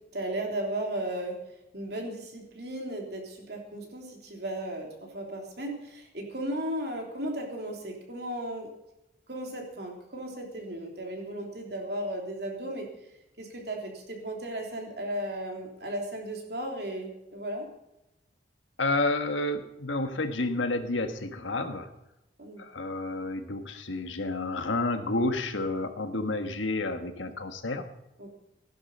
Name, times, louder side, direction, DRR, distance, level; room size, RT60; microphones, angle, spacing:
voice 1, 0.0-1.4 1.7-8.7 9.3-12.9 13.4-17.7 22.4-22.6 28.2-28.4, right 1 dB, 60° right, 1 dB, 3.3 m, -35 dB
voice 2, 18.8-21.9 22.6-27.8, left 2 dB, 90° left, 7 dB, 1.6 m, -30 dB
16.0 x 11.0 x 5.5 m, 0.90 s
head